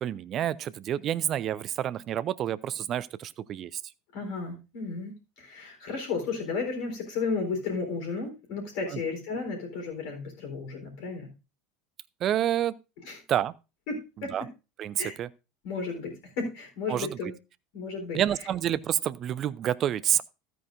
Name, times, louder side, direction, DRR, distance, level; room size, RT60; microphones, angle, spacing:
voice 1, 0.0-3.8 8.9-9.0 12.2-12.8 13.3-13.5 14.3-14.5 14.8-15.3 16.9-17.2 18.1-20.2, right 11 dB, 40° right, 0.5 m, -28 dB
voice 2, 4.1-11.3 13.0-13.2 13.9-14.5 15.0-15.1 15.6-17.3 17.7-18.2, left 4 dB, 55° left, 3.9 m, -33 dB
13.5 x 9.3 x 2.6 m
figure-of-eight pair, 75°, 0 cm